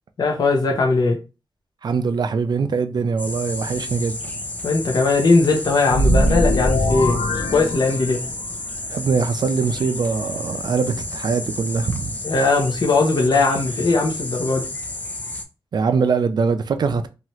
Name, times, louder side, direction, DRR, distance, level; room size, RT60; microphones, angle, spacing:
voice 1, 0.2-1.2 4.6-7.2 7.5-8.2 12.2-14.7, left 3 dB, 50° left, 0.7 m, -19 dB
voice 2, 1.8-4.4 8.9-12.2 15.7-17.1, right 5 dB, 55° right, 0.3 m, -22 dB
sound 1, 3.2-15.4, left 2 dB, 20° left, 0.4 m, -31 dB
sound 2, 5.9-8.4, equal, 85° left, 0.7 m, -21 dB
2.8 x 2.4 x 3.0 m
wide cardioid pair, 165°, 9 cm